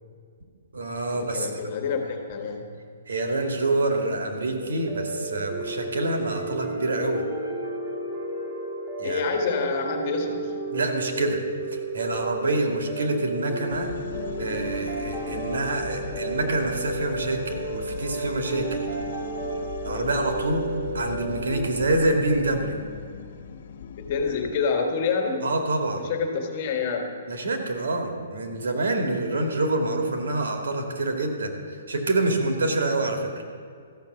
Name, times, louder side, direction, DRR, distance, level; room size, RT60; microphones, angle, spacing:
voice 1, 0.7-1.5 3.1-7.2 9.0-9.2 10.7-11.4 11.7-13.9 14.4-18.8 19.8-20.7 20.9-22.8 25.4-26.0 27.3-33.3, right 2 dB, 80° right, 3 dB, 2.2 m, -26 dB
voice 2, 1.3-2.8 9.0-10.5 24.0-25.5 26.0-27.2, left 5 dB, 35° left, 3 dB, 1.7 m, -27 dB
sound 1, 4.6-21.7, right 2 dB, 35° right, 3.0 m, -32 dB
sound 2, 13.7-24.5, left 6 dB, 55° left, 0.7 m, -39 dB
14.0 x 6.5 x 7.9 m, 2.2 s
hypercardioid pair, 160°, 0 cm